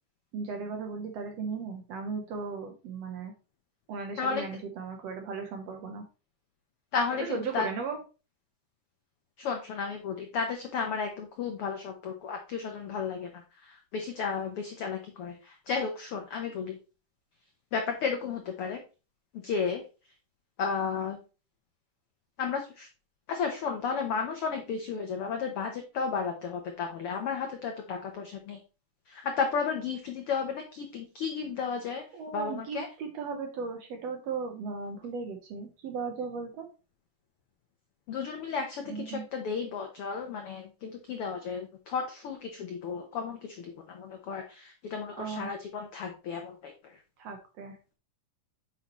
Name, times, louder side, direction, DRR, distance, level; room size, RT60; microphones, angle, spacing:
voice 1, 0.3-3.3 3.9-6.0 7.3-8.0 32.1-36.7 38.9-39.2 45.2-45.5 47.2-47.8, right 5 dB, 65° right, 4 dB, 1.7 m, -36 dB
voice 2, 6.9-7.7 9.4-16.8 17.7-18.8 19.3-19.8 20.6-21.2 22.4-22.9 23.3-28.6 29.1-32.0 32.3-32.9 38.1-47.0, left 5 dB, 80° left, 4 dB, 1.2 m, -33 dB
8.2 x 5.7 x 3.0 m, 0.32 s
omnidirectional pair, 3.7 m